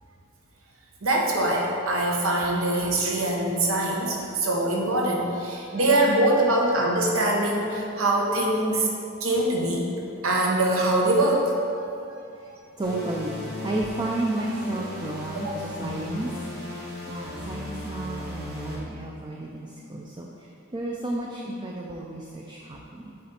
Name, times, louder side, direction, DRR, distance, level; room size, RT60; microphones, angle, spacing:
voice 1, 1.0-8.9 9.2-9.9 10.2-11.6 15.3-15.5, right 1 dB, 80° right, -1 dB, 1.0 m, -23 dB
voice 2, 5.5-5.8 11.8-16.3 16.7-16.8 17.1-23.2, right 2 dB, 20° right, -2 dB, 0.4 m, -33 dB
sound 1, 12.8-18.8, left 1 dB, 50° right, 1.4 m, -36 dB
7.5 x 3.9 x 4.2 m, 2.6 s
head